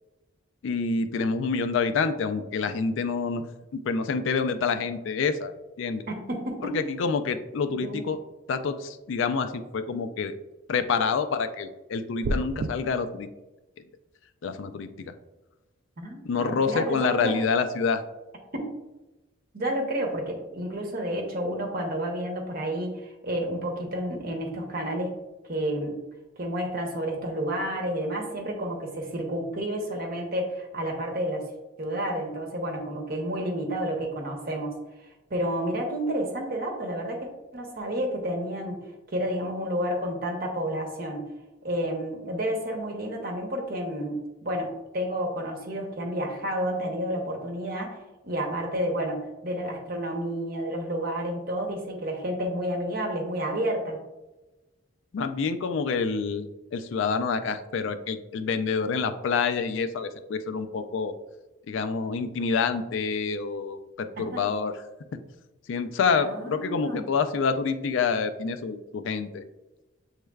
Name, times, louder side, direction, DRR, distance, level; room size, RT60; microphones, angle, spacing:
voice 1, 0.6-3.4 3.7-6.0 6.6-8.2 8.5-10.3 10.7-13.3 14.4-15.1 16.2-18.0 55.1-61.2 61.7-64.7 65.7-69.4, left 5 dB, 65° left, 10 dB, 0.3 m, -27 dB
voice 2, 6.1-6.8 7.8-8.0 16.0-17.4 18.5-18.7 19.5-25.1 25.5-26.0 26.4-31.5 31.8-34.8 35.3-38.8 39.1-41.3 41.6-54.0 64.2-64.4 66.1-67.1, right 1 dB, 45° right, 2 dB, 0.9 m, -30 dB
sound 1, 12.2-12.7, right 1 dB, 60° right, 0.3 m, -28 dB
7.2 x 3.2 x 2.3 m, 1.1 s
head